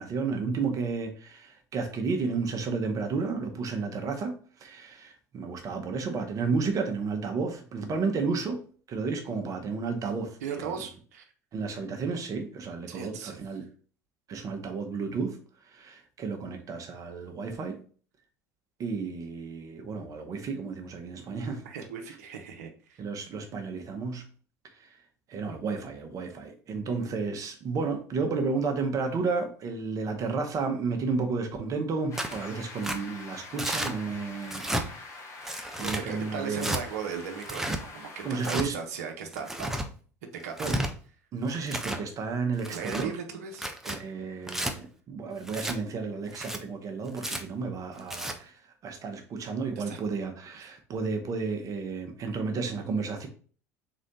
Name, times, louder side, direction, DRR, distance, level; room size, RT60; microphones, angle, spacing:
voice 1, 0.0-4.3 4.6-8.6 8.9-10.7 11.5-13.7 14.3-15.4 15.7-17.8 18.8-21.6 23.0-24.2 24.8-24.9 25.3-34.7 35.2-35.3 35.8-36.8 38.2-38.8 40.6-40.8 41.3-43.1 43.8-48.5 48.8-53.3, right 4 dB, 40° right, 1.0 m, -32 dB
voice 2, 10.4-11.2 12.9-13.4 21.6-23.0 35.8-39.8 40.2-40.7 42.7-44.5 49.8-50.0 50.6-50.7, right 6 dB, 70° right, 0.9 m, -38 dB
sound 1, 32.1-38.6, left 3 dB, 35° left, 1.4 m, -45 dB
Tearing, 32.1-32.4 32.8-33.0 33.6-33.9 34.4-34.8 35.4-36.0 36.6-36.8 37.4-37.8 38.4-38.7 39.3-39.9 40.4-40.9 41.5-42.0 42.6-43.1 43.5-44.0 44.5-44.7 45.5-45.8 46.3-46.6 47.2-47.4 48.0-48.3, right 1 dB, 5° right, 0.7 m, -32 dB
3.8 x 3.2 x 4.1 m
figure-of-eight pair, 70°, 9 cm